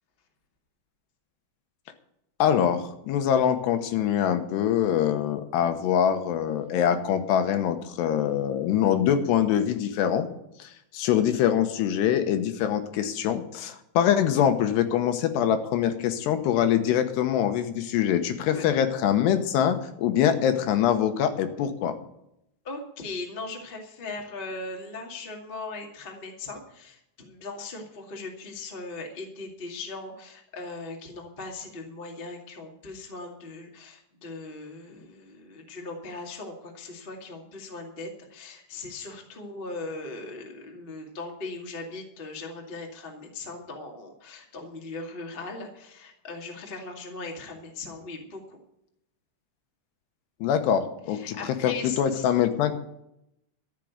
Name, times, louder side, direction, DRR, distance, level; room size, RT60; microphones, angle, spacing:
voice 1, 2.4-10.3 10.6-21.9 50.4-52.7, left 9 dB, 75° left, 8 dB, 2.9 m, -24 dB
voice 2, 22.6-48.6 51.1-52.3, left 3 dB, 55° left, 1 dB, 0.5 m, -39 dB
13.5 x 6.3 x 9.4 m, 0.81 s
omnidirectional pair, 5.2 m